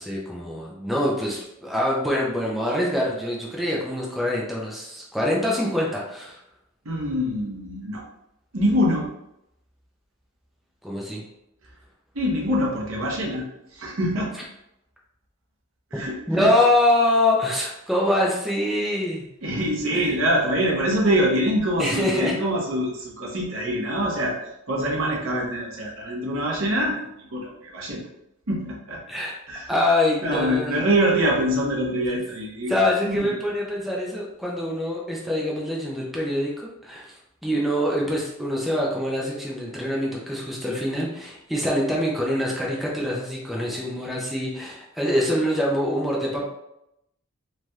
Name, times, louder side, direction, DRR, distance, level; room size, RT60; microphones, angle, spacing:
voice 1, 0.0-6.4 10.8-11.2 16.3-19.2 19.9-20.1 21.8-22.4 29.1-29.3 29.7-30.8 32.7-37.1 37.4-46.4, left 1 dB, ahead, -4 dB, 0.5 m, -24 dB
voice 2, 6.8-8.0 8.5-9.1 12.1-13.4 13.7-14.3 15.9-16.5 19.4-24.4 24.7-28.0 28.5-29.0 29.5-29.7 30.2-32.7 33.0-33.2, equal, 70° right, -2 dB, 0.8 m, -24 dB
3.2 x 2.7 x 2.3 m, 0.83 s
head